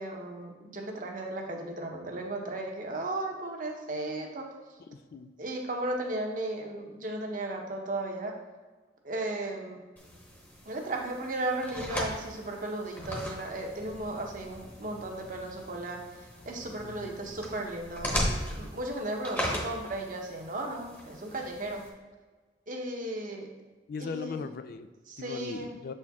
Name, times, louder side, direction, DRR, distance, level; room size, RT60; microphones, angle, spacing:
voice 1, 0.0-4.6 5.4-8.3 9.0-9.8 10.6-18.1 18.6-21.9 22.7-23.5 24.0-24.4 25.1-25.7, right 2 dB, 50° right, 1 dB, 0.9 m, -35 dB
voice 2, 4.9-5.3 16.8-17.2 23.9-24.9 25.2-25.9, left 4 dB, 55° left, 10 dB, 0.3 m, -38 dB
sound 1, 10.0-21.9, equal, 10° left, 1.0 m, -38 dB
7.2 x 4.4 x 3.5 m, 1.3 s
head